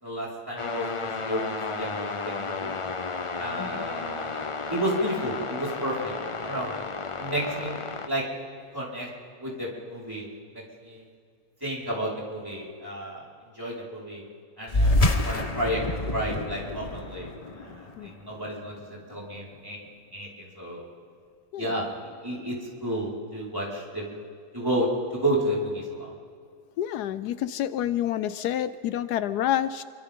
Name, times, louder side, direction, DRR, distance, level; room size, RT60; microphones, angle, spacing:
voice 1, 0.0-1.4 1.7-2.7 3.4-6.1 6.4-6.7 7.2-8.2 8.7-9.1 9.4-10.3 10.5-11.0 11.6-13.3 13.5-14.2 14.6-19.8 20.1-20.8 21.6-22.6 22.8-24.2 24.5-26.1, equal, 15° right, -7 dB, 5.1 m, -32 dB
sound 1, 0.6-8.1, left 4 dB, 45° left, 0.4 m, -33 dB
sound 2, 14.7-19.6, left 1 dB, 30° left, 0.9 m, -27 dB
voice 2, 21.5-21.9 26.8-29.8, left 11 dB, 85° left, 14 dB, 1.2 m, -28 dB
29.0 x 24.0 x 3.8 m, 2.2 s
omnidirectional pair, 1.7 m